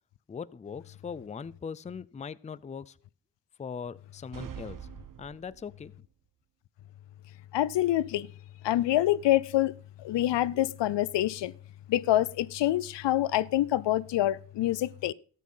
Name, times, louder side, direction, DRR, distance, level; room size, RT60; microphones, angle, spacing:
voice 1, 0.3-3.0 3.6-4.8 5.2-5.9, left 6 dB, 15° left, 0.4 m, -40 dB
sound 1, 4.3-6.0, right 8 dB, 50° right, 1.0 m, -44 dB
voice 2, 7.5-8.3 8.6-11.5 11.9-15.1, left 14 dB, 75° left, 0.6 m, -26 dB
13.5 x 7.5 x 5.6 m
cardioid pair, 70°, 43 cm